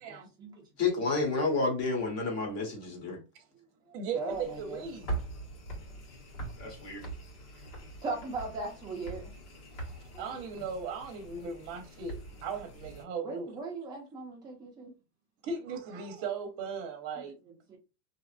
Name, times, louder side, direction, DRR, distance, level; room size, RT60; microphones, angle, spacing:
voice 1, 0.1-1.1 4.1-4.8 8.0-9.2 10.1-10.2 13.2-14.9 17.7-17.8, right 3 dB, 10° right, 0.4 m, -38 dB
voice 2, 0.8-3.2 6.6-7.0, left 3 dB, 35° left, 1.2 m, -30 dB
voice 3, 3.9-5.1 10.2-13.5 15.4-17.4, right 5 dB, 30° right, 0.8 m, -37 dB
sound 1, 4.3-13.0, right 2 dB, 75° left, 1.7 m, -43 dB
2.8 x 2.4 x 2.4 m
supercardioid pair, 155°, 44 cm